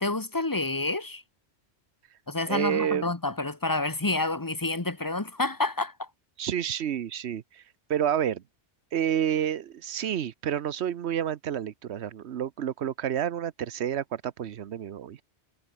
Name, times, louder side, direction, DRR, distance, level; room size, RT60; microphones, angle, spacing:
voice 1, 0.0-1.2 2.3-6.1, left 2 dB, 20° left, 1.1 m, -29 dB
voice 2, 2.5-3.1 6.4-7.6 7.9-8.4 8.9-15.2, right 9 dB, 75° right, 1.1 m, -29 dB
omnidirectional pair, 1.1 m